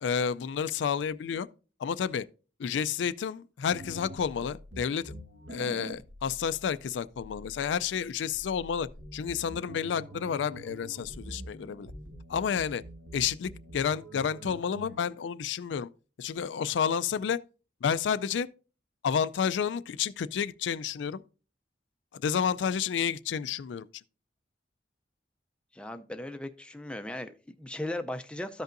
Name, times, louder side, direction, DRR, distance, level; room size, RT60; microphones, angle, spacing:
voice 1, 0.0-1.5 1.8-2.2 2.6-5.1 5.5-11.9 12.3-12.8 13.1-15.9 16.2-17.4 17.8-18.5 19.0-21.2 22.1-23.9, left 7 dB, 85° left, 0.4 m, -30 dB
sound 1, 3.7-15.0, right 1 dB, 85° right, 1.4 m, -46 dB
voice 2, 25.7-28.6, left 1 dB, 5° left, 0.4 m, -37 dB
13.5 x 5.3 x 2.5 m
head